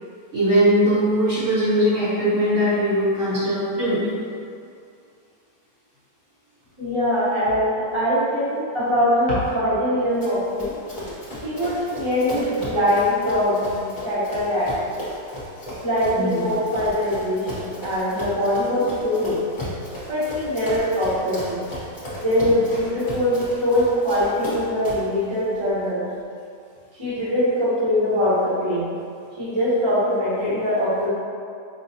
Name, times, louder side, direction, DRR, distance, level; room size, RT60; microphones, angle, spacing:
voice 1, 0.3-4.1 11.3-11.4 16.1-16.5 18.8-18.9, equal, 50° right, -11 dB, 1.2 m, -20 dB
voice 2, 6.8-10.7 11.4-13.7 14.0-14.7 15.8-19.5 20.1-21.7 22.2-26.1 27.0-28.9 29.4-31.1, equal, 20° right, -11 dB, 0.9 m, -22 dB
Run, 10.2-25.1, left 1 dB, 30° left, 1.1 m, -35 dB
5.4 x 2.3 x 2.8 m, 2.3 s
omnidirectional pair, 1.8 m